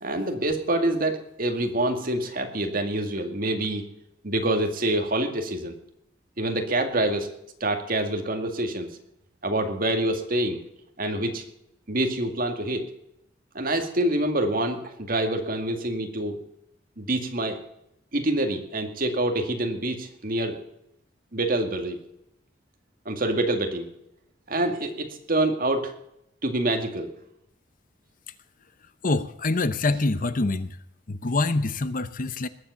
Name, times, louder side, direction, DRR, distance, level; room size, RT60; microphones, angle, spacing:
voice 1, 0.0-3.8 4.2-5.7 6.4-7.3 7.6-9.0 9.4-10.6 11.0-11.4 11.9-12.8 13.5-16.4 17.0-17.6 18.1-20.6 21.3-22.0 23.1-23.9 24.5-25.9 26.4-27.1, right 1 dB, 50° right, 4 dB, 2.2 m, -26 dB
voice 2, 29.0-30.7 31.1-32.5, left 2 dB, 45° left, 13 dB, 0.8 m, -25 dB
20.0 x 7.8 x 6.9 m, 0.79 s
head